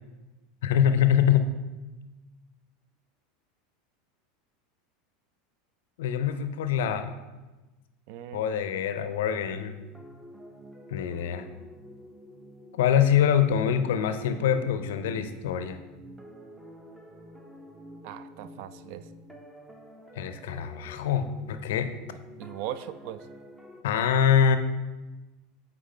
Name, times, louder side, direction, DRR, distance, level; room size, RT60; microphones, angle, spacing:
voice 1, 0.6-1.5 6.0-7.1 8.3-9.8 10.9-11.5 12.7-15.8 20.2-21.9 23.8-24.6, left 8 dB, 65° left, 10 dB, 0.4 m, -24 dB
voice 2, 8.1-8.4 18.0-19.0 22.4-23.3, right 12 dB, 55° right, 13 dB, 0.3 m, -38 dB
sound 1, 9.5-23.8, equal, 10° right, 0.7 m, -48 dB
8.4 x 3.7 x 3.2 m, 1.2 s
figure-of-eight pair, 80°, 0 cm